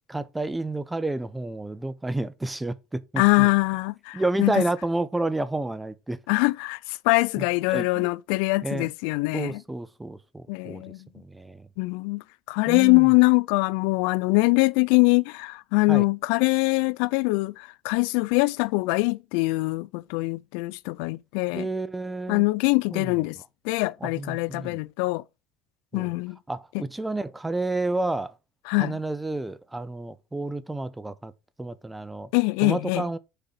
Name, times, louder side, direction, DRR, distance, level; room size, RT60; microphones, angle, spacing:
voice 1, 0.1-3.5 4.1-6.2 7.4-8.1 8.6-8.9 9.3-10.8 11.1-11.7 12.7-13.1 15.9-16.0 21.5-22.4 22.9-23.2 24.0-24.8 25.9-26.1 26.5-28.3 28.8-31.3 31.6-32.3 32.6-33.2, right 2 dB, 10° right, 0.7 m, -30 dB
voice 2, 3.2-4.6 6.3-9.6 10.5-11.0 11.8-21.7 22.3-23.4 23.6-25.2 25.9-26.4 26.7-26.8 28.7-29.0 32.3-33.0, left 25 dB, 80° left, 0.3 m, -23 dB
6.7 x 3.9 x 5.7 m
supercardioid pair, 105°, 0 cm